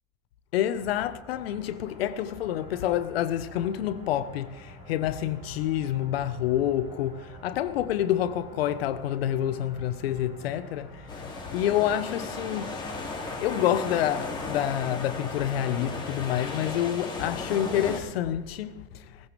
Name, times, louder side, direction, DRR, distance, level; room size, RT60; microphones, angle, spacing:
voice 1, 0.5-13.1 13.4-19.1, left 11 dB, 85° left, 1.1 m, -28 dB
sound 1, 0.7-16.3, right 1 dB, 15° right, 2.8 m, -49 dB
sound 2, 11.1-18.0, left 3 dB, 15° left, 2.7 m, -35 dB
19.5 x 14.5 x 3.4 m
supercardioid pair, 135°, 30 cm